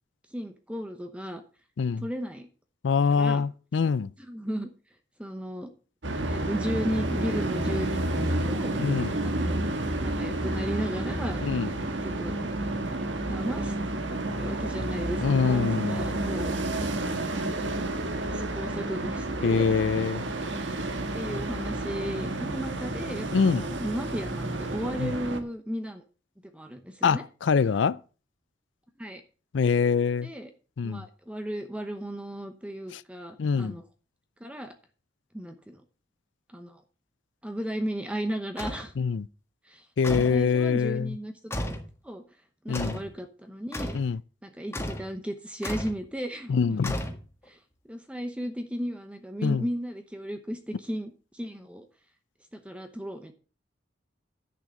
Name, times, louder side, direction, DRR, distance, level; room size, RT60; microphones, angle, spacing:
voice 1, 0.3-1.4 2.0-2.5 3.1-3.4 4.3-4.7 5.2-5.7 6.3-8.7 9.2-9.6 10.0-11.4 12.0-12.4 13.3-13.7 14.4-16.5 16.9-17.3 18.2-19.7 21.1-26.0 26.5-27.2 29.0-29.2 30.2-30.5 30.8-33.8 34.4-34.7 35.3-35.8 36.5-36.8 37.4-38.9 39.6-41.3 42.0-42.2 42.6-44.0 44.4-46.8 47.5-47.6 47.9-51.8 52.5-53.3, equal, 5° right, 0.9 m, -35 dB
voice 2, 2.8-4.1 8.8-9.1 11.4-11.7 15.2-16.1 19.4-20.2 23.3-23.7 25.0-25.1 27.0-28.0 29.5-30.3 30.8-31.0 32.9-33.0 33.4-33.7 39.0-39.3 40.0-41.1 42.7-43.0 43.9-44.2 46.5-46.9 49.4-49.6, left 5 dB, 75° left, 0.4 m, -24 dB
sound 1, 6.0-25.4, right 1 dB, 75° right, 1.5 m, -30 dB
sound 2, 38.6-38.9 40.0-40.4 41.5-41.9 42.7-43.1 43.7-44.1 44.7-45.1 45.6-46.0 46.8-47.5, left 1 dB, 15° left, 1.6 m, -33 dB
10.5 x 6.4 x 6.3 m
head